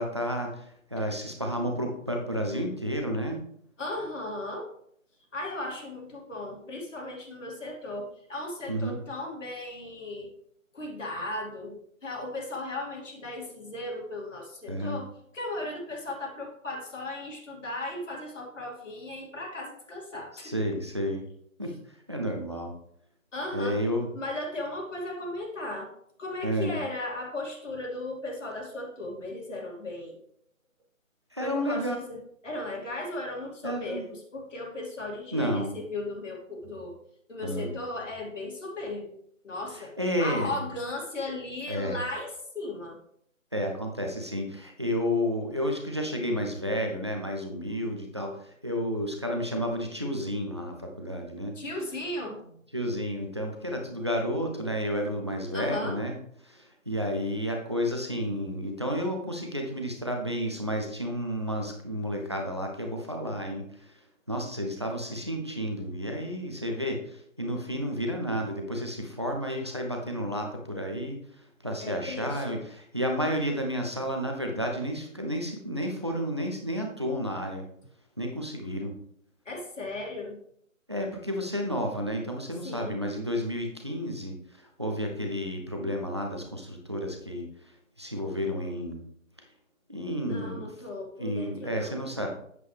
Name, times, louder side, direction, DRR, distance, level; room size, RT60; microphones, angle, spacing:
voice 1, 0.0-3.4 8.7-9.0 14.7-15.0 20.4-21.2 21.6-21.7 22.1-22.7 23.5-24.1 26.4-26.8 31.3-32.0 33.6-34.0 35.3-35.7 37.4-37.7 39.7-40.6 41.7-42.0 43.5-51.6 52.7-56.1 56.4-63.9 64.3-71.2 71.6-77.6 78.2-78.9 80.9-89.0 89.9-90.7 91.2-92.3, equal, 20° right, 2 dB, 0.7 m, -31 dB
voice 2, 3.8-4.7 5.3-10.3 10.7-20.5 21.6-21.7 23.3-23.8 24.1-25.9 26.2-30.2 31.4-37.0 37.3-39.2 39.4-39.9 40.2-43.0 51.5-52.4 55.5-56.0 71.8-72.6 79.4-80.4 82.6-83.0 90.2-92.0, left 2 dB, 65° left, -1 dB, 2.7 m, -36 dB
7.9 x 7.9 x 3.4 m, 0.67 s
hypercardioid pair, 170°, 41 cm